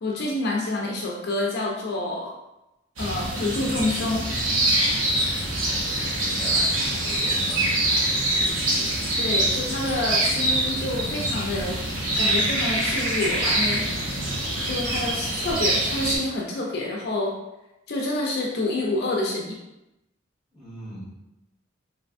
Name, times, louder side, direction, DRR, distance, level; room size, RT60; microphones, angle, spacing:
voice 1, 0.0-2.3 3.0-4.3 9.2-11.8 12.2-14.1 14.6-17.4 17.9-19.6, left 2 dB, 55° left, -1 dB, 0.4 m, -28 dB
sound 1, 3.0-16.2, right 1 dB, 90° right, 0.8 m, -24 dB
voice 2, 5.6-7.7 20.5-21.1, equal, ahead, -9 dB, 1.3 m, -39 dB
3.2 x 2.5 x 2.5 m, 0.93 s
head